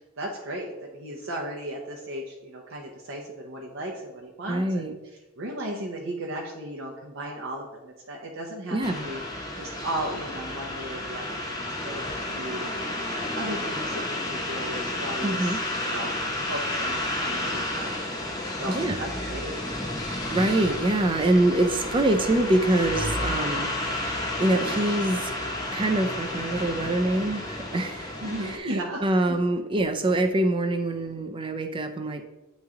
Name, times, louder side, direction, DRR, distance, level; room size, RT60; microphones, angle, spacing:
voice 1, 0.2-4.9 5.4-9.2 9.5-11.5 11.8-12.7 13.3-15.6 15.8-16.1 16.5-17.9 18.5-19.6 28.2-29.0 29.3-29.4, right 1 dB, 60° right, -2 dB, 0.7 m, -35 dB
voice 2, 4.5-4.9 8.7-9.1 15.2-15.6 18.7-19.1 20.3-25.3 25.7-28.7 29.0-32.2, right 1 dB, 20° right, 7 dB, 0.4 m, -25 dB
sound 1, 8.8-28.6, left 1 dB, 15° left, 0.7 m, -31 dB
9.2 x 3.1 x 3.6 m, 1.1 s
head